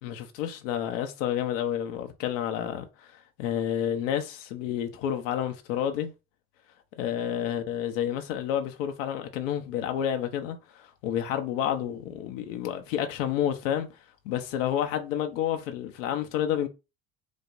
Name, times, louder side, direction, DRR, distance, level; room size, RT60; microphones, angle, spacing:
voice 1, 0.0-3.1 3.4-6.1 7.0-13.9 14.2-16.7, left 10 dB, 85° left, 0.7 m, -30 dB
5.0 x 2.1 x 2.5 m
hypercardioid pair, 70°, 39 cm